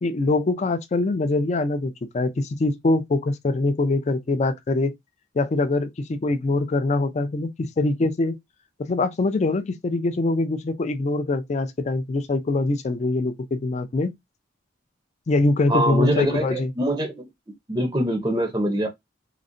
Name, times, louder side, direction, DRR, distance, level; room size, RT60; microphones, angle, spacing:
voice 1, 0.0-4.9 5.3-8.4 8.9-14.1 15.3-16.7, left 2 dB, 35° left, 0.3 m, -23 dB
voice 2, 15.7-17.3 17.7-18.9, equal, 20° right, 0.5 m, -23 dB
3.8 x 2.0 x 2.5 m
head